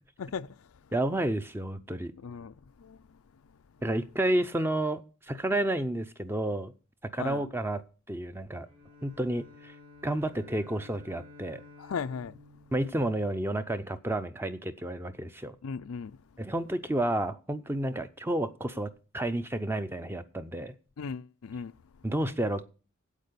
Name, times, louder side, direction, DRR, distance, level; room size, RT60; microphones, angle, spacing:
voice 1, 0.2-0.6 2.2-3.0 7.2-7.4 11.8-12.4 15.6-16.2 21.0-21.7, left 5 dB, 70° left, 0.5 m, -37 dB
voice 2, 0.9-2.1 3.8-5.0 5.3-6.7 7.1-7.8 8.1-8.7 9.0-9.7 10.0-11.6 12.7-15.5 16.4-18.9 19.1-20.7 22.0-22.6, right 1 dB, 10° right, 0.6 m, -30 dB
Bowed string instrument, 8.6-13.8, left 2 dB, 90° right, 3.0 m, -53 dB
8.5 x 8.3 x 6.7 m
head